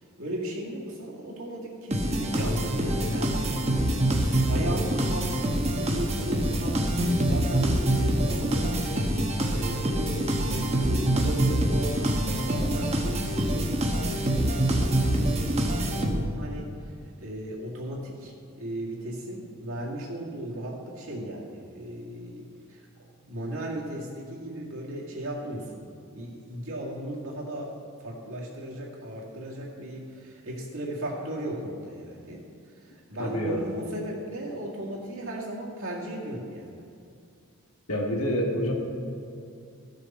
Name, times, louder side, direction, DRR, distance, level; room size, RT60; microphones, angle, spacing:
voice 1, 0.2-16.7 17.2-18.3 18.6-25.8 26.1-27.7 28.0-32.4 32.8-36.8, right 1 dB, 70° right, -4 dB, 2.0 m, -36 dB
sound 1, 1.9-16.5, right 1 dB, 30° right, 0.9 m, -25 dB
voice 2, 33.2-33.6 37.9-38.7, equal, 80° left, 0 dB, 1.7 m, -27 dB
14.5 x 6.6 x 4.2 m, 2.5 s
head